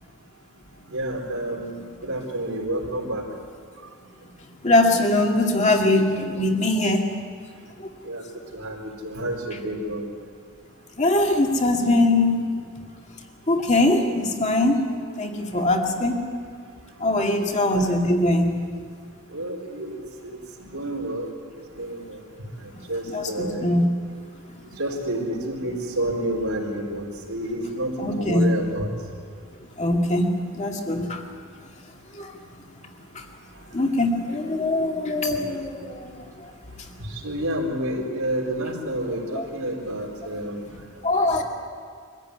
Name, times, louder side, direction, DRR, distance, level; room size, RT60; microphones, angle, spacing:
voice 1, 0.8-1.7 2.0-3.3 3.8-3.9 8.0-10.1 17.2-18.0 19.3-22.2 22.5-23.7 24.6-28.9 33.5-33.8 35.0-35.4 37.0-40.9 41.3-41.4, right 1 dB, 90° right, 0 dB, 4.2 m, -30 dB
voice 2, 4.6-7.0 11.0-12.5 13.5-14.8 15.2-16.2 17.0-18.6 23.1-23.9 28.0-28.4 29.8-30.3 30.6-31.2 32.2-32.3 33.7-36.1 39.4-39.5 41.0-41.4, left 2 dB, 35° left, 2 dB, 2.3 m, -21 dB
23.5 x 15.0 x 9.6 m, 2.1 s
head